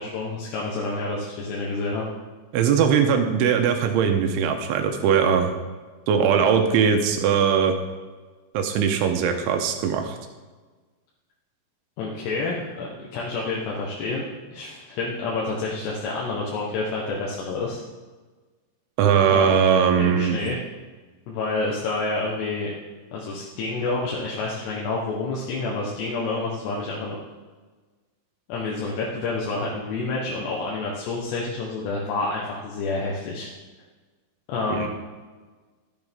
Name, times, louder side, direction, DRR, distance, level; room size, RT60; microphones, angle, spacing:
voice 1, 0.0-2.1 12.0-17.8 19.3-19.5 20.0-20.6 21.3-22.7 23.1-27.2 28.5-33.5 34.5-34.9, left 3 dB, 65° left, -4 dB, 3.0 m, -28 dB
voice 2, 2.5-5.5 6.1-7.8 8.5-10.2 19.0-20.4 34.7-34.9, right 7 dB, 80° right, 5 dB, 3.0 m, -20 dB
13.0 x 11.5 x 3.7 m, 1.3 s
omnidirectional pair, 6.0 m